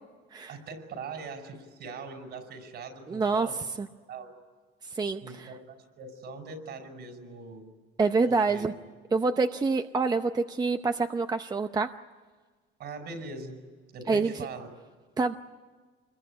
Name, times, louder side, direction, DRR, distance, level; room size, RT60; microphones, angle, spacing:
voice 1, 0.5-3.6 4.1-4.3 5.2-7.6 8.3-8.7 12.8-13.7 13.9-14.7, right 4 dB, 60° right, 6 dB, 5.5 m, -41 dB
voice 2, 3.1-3.5 3.8-3.9 4.8-5.5 8.0-8.7 9.1-11.9 14.1-14.5 15.2-15.3, right 4 dB, 20° right, 8 dB, 0.7 m, -26 dB
27.0 x 22.0 x 9.8 m, 1.5 s
cardioid pair, 135°, 20 cm